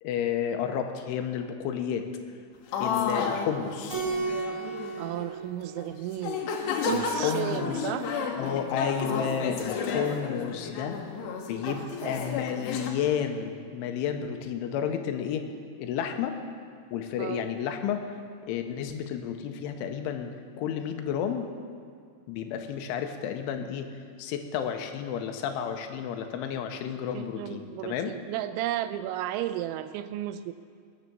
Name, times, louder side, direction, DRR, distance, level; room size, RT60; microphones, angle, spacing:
voice 1, 0.0-2.1 2.8-4.0 6.9-7.9 8.4-11.0 11.5-15.4 15.8-16.4 16.9-18.1 18.5-20.3 20.6-21.5 22.3-23.9 24.2-28.1, left 8 dB, 90° left, 6 dB, 3.3 m, -31 dB
sound 1, 2.7-5.3 5.8-5.9 6.2-12.9, left 5 dB, 70° left, 3.0 m, -32 dB
Keyboard (musical), 3.9-6.5, right 4 dB, 20° right, 3.4 m, -34 dB
voice 2, 5.0-8.2 11.6-12.2 17.2-17.5 27.1-30.5, right 12 dB, 85° right, 12 dB, 2.9 m, -34 dB
21.5 x 7.2 x 6.8 m, 2.3 s
omnidirectional pair, 5.5 m